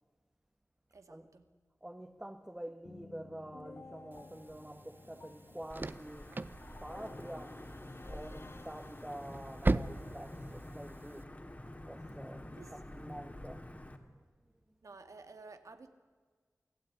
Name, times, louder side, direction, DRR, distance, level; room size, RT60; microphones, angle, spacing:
voice 1, 0.9-1.5 12.6-12.8 14.8-15.9, right 3 dB, 85° right, 2.3 m, -53 dB
voice 2, 1.8-7.7 8.1-11.3 11.8-13.7, right 1 dB, 15° right, 1.5 m, -47 dB
sound 1, 2.8-9.6, left 3 dB, 50° left, 0.7 m, -55 dB
sound 2, 4.1-11.2, right 2 dB, 40° right, 0.8 m, -39 dB
Wind / Thunder / Rain, 5.7-14.0, left 1 dB, 30° left, 2.7 m, -48 dB
28.5 x 17.0 x 9.9 m
wide cardioid pair, 70°, 5 cm